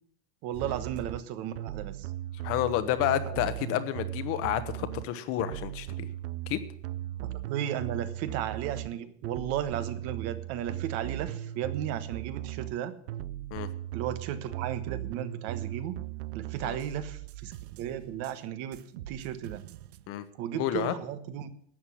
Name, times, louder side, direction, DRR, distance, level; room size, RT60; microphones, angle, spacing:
voice 1, 0.4-2.1 3.2-3.4 7.2-12.9 13.9-16.0 16.3-19.6 20.4-21.5, right 10 dB, 50° right, 12 dB, 1.2 m, -35 dB
sound 1, 0.5-1.2 1.5-5.0 5.4-8.9 9.2-12.7 13.1-18.3 18.7-20.1, right 14 dB, 85° right, 0.7 m, -38 dB
voice 2, 2.4-6.1 6.5-6.6 13.5-13.7 16.6-16.8 20.1-20.2 20.6-20.9, left 11 dB, 45° left, 11 dB, 1.2 m, -30 dB
12.5 x 8.2 x 8.5 m, 0.63 s
supercardioid pair, 155°, 32 cm